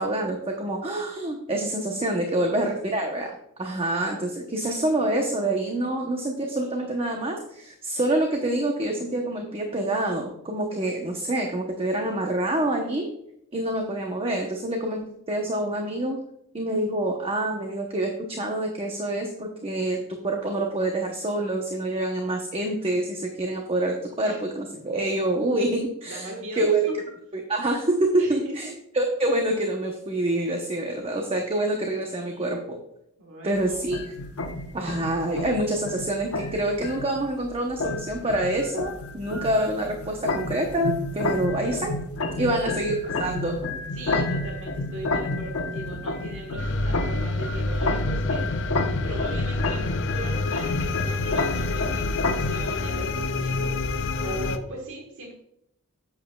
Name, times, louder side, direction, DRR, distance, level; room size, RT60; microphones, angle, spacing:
voice 1, 0.0-13.1 13.5-16.2 16.5-26.9 27.3-32.8 33.4-34.1 34.7-42.0 42.4-43.6, right 1 dB, 25° right, 2 dB, 0.8 m, -26 dB
voice 2, 26.0-26.7 28.2-28.7 32.3-32.5 33.2-33.8 42.4-42.7 43.9-55.3, right 1 dB, 60° right, 0 dB, 1.5 m, -39 dB
sound 1, 33.5-52.7, left 2 dB, 80° left, 1.0 m, -30 dB
sound 2, 46.6-54.6, left 3 dB, 55° left, 0.6 m, -28 dB
10.5 x 8.2 x 2.3 m, 0.77 s
head